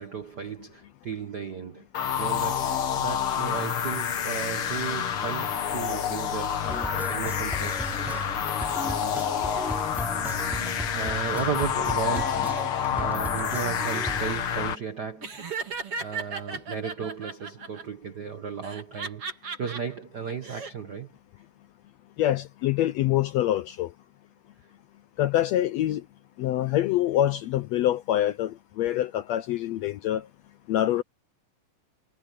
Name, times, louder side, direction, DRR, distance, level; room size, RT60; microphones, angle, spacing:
voice 1, 0.0-1.9 2.2-6.6 6.9-8.4 10.9-12.6 12.9-15.4 16.0-19.2 19.6-21.1, right 7 dB, 65° right, 1.0 m, -35 dB
sound 1, 1.9-14.8, left 8 dB, 55° left, 2.0 m, -28 dB
sound 2, 6.6-14.4, equal, ahead, 3.5 m, -36 dB
Laughter, 15.2-17.8 18.6-19.8 20.3-20.7, right 4 dB, 45° right, 4.1 m, -35 dB
voice 2, 22.2-23.9 25.2-26.0 26.4-30.2 30.7-31.0, left 13 dB, 80° left, 1.6 m, -25 dB
omnidirectional pair, 3.7 m